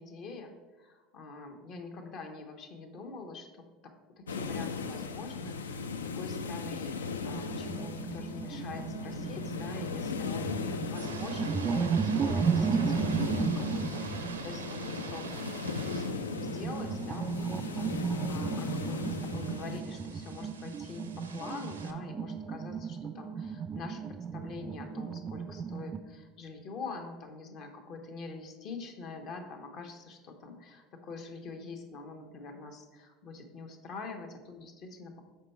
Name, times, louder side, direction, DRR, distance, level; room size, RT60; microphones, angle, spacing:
voice 1, 0.0-35.2, left 3 dB, 50° left, 5 dB, 0.9 m, -45 dB
sound 1, 4.3-19.8, left 5 dB, 80° left, 0.3 m, -37 dB
sound 2, 7.2-26.0, right 6 dB, 30° right, 0.3 m, -34 dB
sound 3, 10.8-21.9, right 4 dB, 85° right, 0.5 m, -45 dB
6.5 x 4.6 x 4.3 m, 1.2 s
figure-of-eight pair, 75°, 0 cm